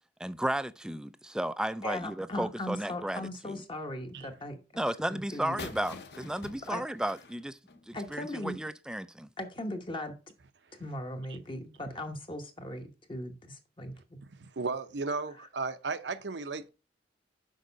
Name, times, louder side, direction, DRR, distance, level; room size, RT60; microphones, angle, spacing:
voice 1, 0.2-3.6 4.8-7.6 7.9-9.3, right 1 dB, 5° right, 0.3 m, -34 dB
voice 2, 1.8-4.8 5.1-5.6 6.7-6.8 7.9-8.6 9.4-10.1 10.8-14.2, left 1 dB, 30° left, 1.0 m, -38 dB
sound 1, 5.6-8.3, left 3 dB, 65° left, 0.8 m, -45 dB
voice 3, 14.2-16.7, right 4 dB, 75° right, 0.7 m, -35 dB
6.5 x 4.8 x 5.3 m
head